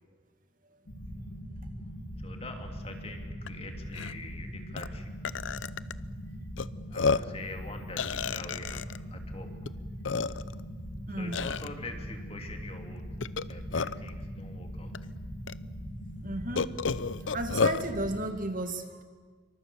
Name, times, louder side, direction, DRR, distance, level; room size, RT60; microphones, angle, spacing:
sound 1, 0.9-18.3, equal, 50° left, 3.1 m, -41 dB
voice 1, 2.2-5.1 6.9-8.8 9.1-9.5 11.1-14.9, left 2 dB, 30° left, 4 dB, 2.8 m, -45 dB
Burping eructation, 3.5-3.6 3.9-4.1 4.8-4.9 5.2-5.9 6.6-6.7 6.9-7.4 8.0-9.0 9.7-9.8 10.0-10.6 11.3-11.7 13.2-14.1 14.9-15.0 15.5-15.6 16.6-17.8, left 5 dB, 80° left, 0.7 m, -30 dB
voice 2, 11.1-11.4 16.2-16.8 17.3-19.0, right 1 dB, 45° right, 7 dB, 2.1 m, -34 dB
27.5 x 24.5 x 7.1 m, 1.5 s
head